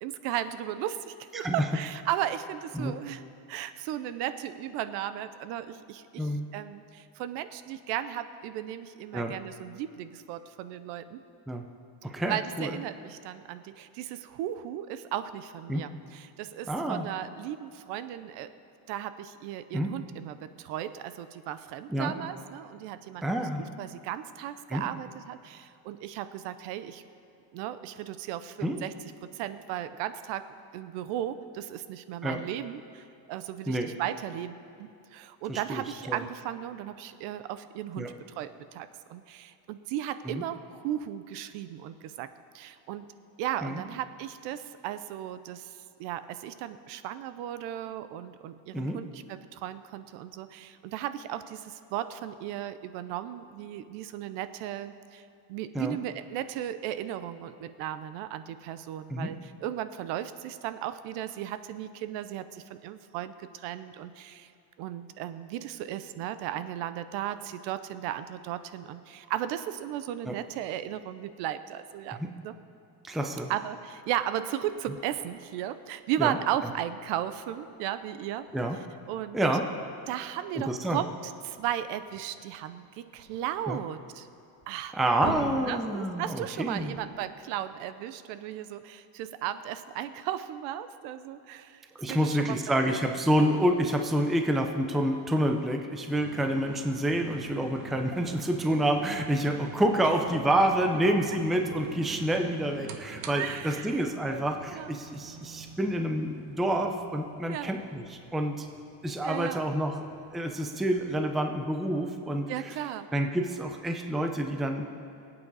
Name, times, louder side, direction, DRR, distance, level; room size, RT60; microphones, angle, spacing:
voice 1, 0.0-3.2 3.5-11.2 12.3-18.5 18.9-23.5 23.8-27.0 27.5-28.9 29.2-30.5 30.7-42.3 42.5-43.1 43.4-55.2 55.5-64.5 64.8-72.5 73.5-78.5 79.1-79.4 80.1-84.3 84.7-85.0 85.7-91.8 92.1-92.6 92.9-93.0 103.3-104.1 104.3-104.9 107.5-107.7 109.2-109.7 112.5-113.1, right 11 dB, 65° right, 13 dB, 0.7 m, -36 dB
voice 2, 1.3-1.6 2.7-2.9 6.2-6.5 9.1-9.3 11.5-11.6 12.0-12.8 15.7-15.9 16.7-17.1 19.7-20.0 21.9-22.1 23.2-23.6 24.7-24.9 28.6-28.8 32.2-32.4 33.7-33.9 35.5-36.2 38.0-38.1 40.3-40.4 43.6-43.8 48.7-49.0 55.7-56.0 59.1-59.4 70.3-70.4 72.1-72.4 73.0-73.5 76.2-76.4 78.5-78.8 79.3-79.6 80.6-81.0 83.7-83.8 84.9-86.9 92.0-108.7 109.0-110.0 110.3-112.7 113.1-114.8, right 1 dB, ahead, 4 dB, 0.4 m, -28 dB
sound 1, 74.7-87.8, right 2 dB, 40° right, 3.5 m, -47 dB
sound 2, 96.2-112.1, right 7 dB, 80° right, 1.2 m, -46 dB
23.5 x 8.7 x 4.1 m, 2.8 s
cardioid pair, 150°, 47 cm